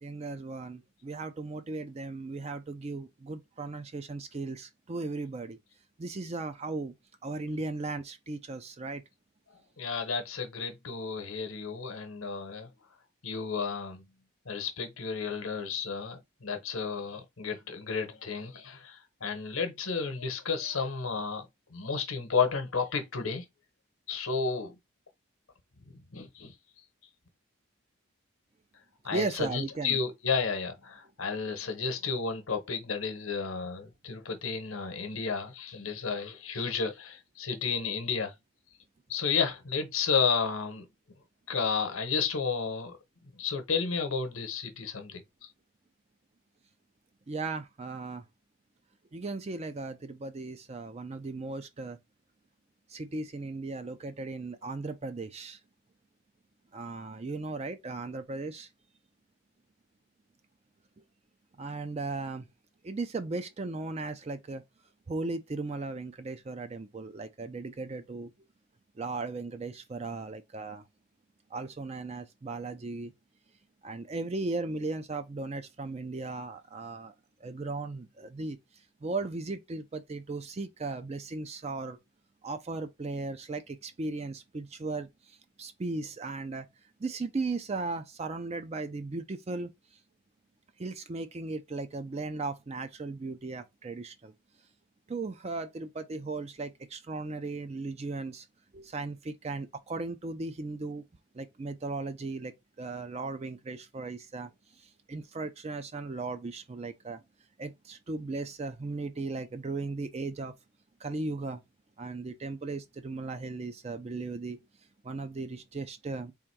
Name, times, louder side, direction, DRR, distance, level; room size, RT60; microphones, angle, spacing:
voice 1, 0.0-5.6 6.0-6.9 7.2-9.0 29.1-30.0 47.3-48.2 49.1-52.0 52.9-55.6 56.7-58.7 61.6-62.5 62.8-64.6 65.1-68.3 69.0-70.8 71.5-73.1 73.8-77.1 77.4-78.6 79.0-82.0 82.4-86.7 87.0-89.7 90.8-94.3 95.1-98.5 98.7-101.0 101.3-104.5 104.8-107.2 107.6-110.5 111.0-111.6 112.0-114.6 115.0-116.3, right 3 dB, 30° right, 0.4 m, -37 dB
voice 2, 9.8-12.7 13.2-14.0 14.5-23.4 24.1-24.7 25.9-26.5 29.0-38.3 39.1-40.9 41.5-43.0 43.3-45.5, left 5 dB, 80° left, 1.0 m, -32 dB
3.6 x 2.6 x 4.5 m
head